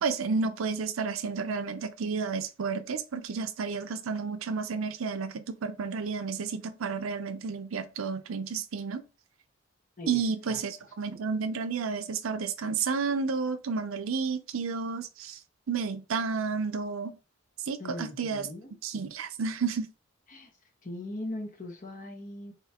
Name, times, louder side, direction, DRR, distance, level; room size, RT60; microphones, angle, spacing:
voice 1, 0.0-9.0 10.1-15.4 15.7-17.1 17.7-18.5 18.8-19.9, right 5 dB, 80° right, 0.5 m, -31 dB
voice 2, 10.0-10.6 11.1-11.2 17.8-18.7 20.3-20.5 20.8-22.5, left 1 dB, 40° left, 1.2 m, -40 dB
4.1 x 3.4 x 2.8 m
head